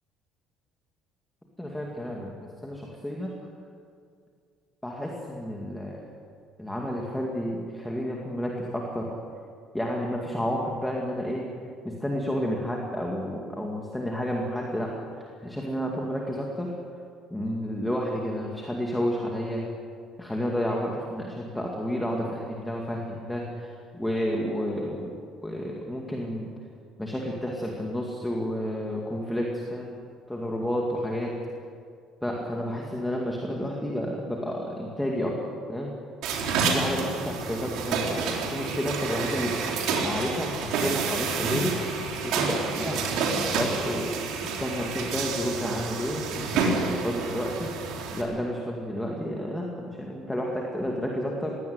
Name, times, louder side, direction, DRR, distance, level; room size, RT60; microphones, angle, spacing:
voice 1, 1.6-3.4 4.8-6.1 6.6-9.1 9.7-11.5 11.8-16.7 17.3-19.6 20.2-25.1 25.4-26.5 27.0-30.0 30.3-31.3 32.2-35.4 35.7-35.9 36.6-41.8 42.2-47.7 48.1-51.6, equal, 5° left, -1 dB, 2.2 m, -31 dB
sound 1, 36.2-48.2, right 4 dB, 75° right, 3.8 m, -29 dB
21.0 x 17.0 x 9.6 m, 2.2 s
cardioid pair, 165°, 0 cm